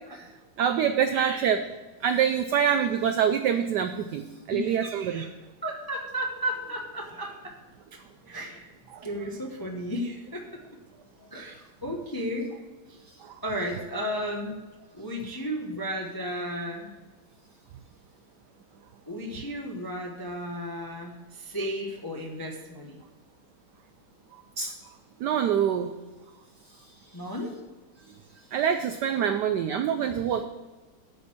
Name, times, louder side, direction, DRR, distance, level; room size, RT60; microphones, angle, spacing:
voice 1, 0.6-1.6 2.0-5.2 8.9-9.0 13.2-13.3 24.6-24.7 25.2-25.9 28.5-30.4, right 8 dB, 85° right, 8 dB, 0.9 m, -25 dB
voice 2, 1.1-1.5 4.5-5.3 5.6-7.5 8.3-8.7 9.0-10.6 11.3-12.5 12.9-13.0 13.4-14.6 14.9-16.9 19.1-23.0 27.1-27.5, equal, 30° left, 0 dB, 0.3 m, -34 dB
9.3 x 4.4 x 7.2 m, 1.3 s
omnidirectional pair, 2.3 m